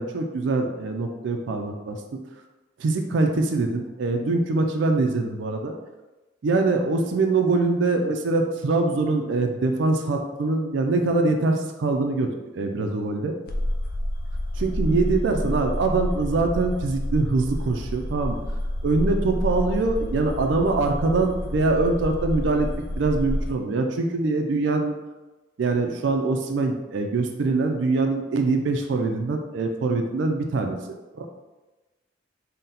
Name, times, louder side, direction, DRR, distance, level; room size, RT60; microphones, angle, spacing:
voice 1, 0.0-2.2 2.8-5.7 6.4-13.3 14.6-18.4 18.8-22.7 23.0-24.9 25.6-30.8 31.2-31.3, right 3 dB, 75° right, 4 dB, 0.4 m, -23 dB
sound 1, 13.5-23.5, left 1 dB, 50° left, 0.4 m, -29 dB
3.9 x 2.1 x 4.0 m, 1.1 s
head